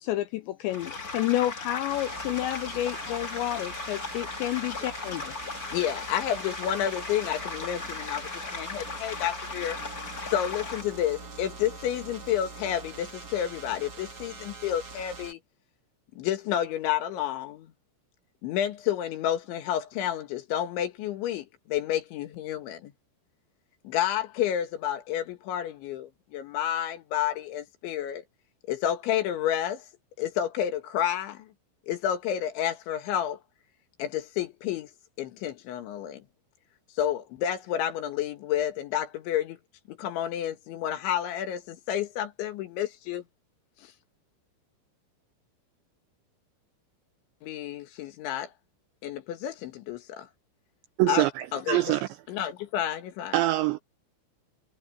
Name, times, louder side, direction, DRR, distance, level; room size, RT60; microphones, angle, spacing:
voice 1, 0.0-5.3, left 14 dB, 90° left, 2.6 m, -30 dB
sound 1, 0.7-10.8, left 3 dB, 40° left, 1.2 m, -37 dB
sound 2, 1.9-15.3, right 4 dB, 45° right, 1.2 m, -44 dB
voice 2, 5.7-9.8 10.3-15.4 16.2-17.7 18.4-22.9 23.8-28.2 28.7-29.8 30.2-31.5 31.9-33.4 34.0-34.9 35.2-36.2 37.0-39.6 39.9-43.2 43.8-43.9 47.4-48.5 49.0-50.3 51.1-51.3 51.5-52.0 52.3-53.4, left 10 dB, 70° left, 3.9 m, -30 dB
voice 3, 51.0-52.1 53.3-53.8, right 15 dB, 85° right, 2.6 m, -24 dB
omnidirectional pair, 5.9 m